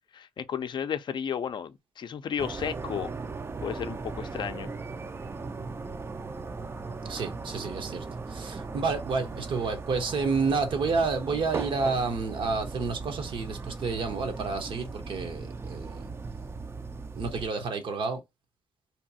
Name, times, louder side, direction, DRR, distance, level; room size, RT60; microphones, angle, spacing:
voice 1, 0.2-3.1 3.6-4.7, left 8 dB, 55° left, 0.4 m, -33 dB
sound 1, 2.4-17.5, right 4 dB, 25° right, 0.4 m, -38 dB
voice 2, 7.0-8.0 8.3-16.1 17.1-18.2, right 4 dB, 65° right, 0.8 m, -30 dB
2.8 x 2.3 x 2.7 m
cardioid pair, 60°, 9 cm